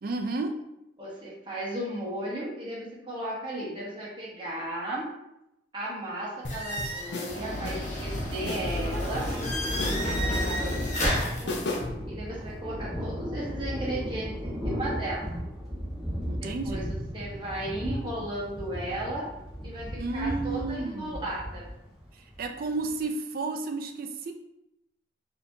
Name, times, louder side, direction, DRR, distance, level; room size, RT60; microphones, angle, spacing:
voice 1, 0.0-0.5 16.2-16.9 20.0-21.2 22.4-24.3, right 3 dB, 55° right, 5 dB, 0.4 m, -32 dB
voice 2, 1.0-5.1 5.7-9.3 9.8-11.5 12.1-15.3 16.3-19.3 19.6-21.7, right 1 dB, 30° right, -6 dB, 1.2 m, -35 dB
sound 1, 6.4-12.0, left 2 dB, 80° left, 0.6 m, -36 dB
sound 2, 6.5-11.4, equal, 45° left, 1.0 m, -30 dB
Thunder, 8.2-23.0, equal, ahead, 1.3 m, -37 dB
4.2 x 2.9 x 2.7 m, 0.86 s
head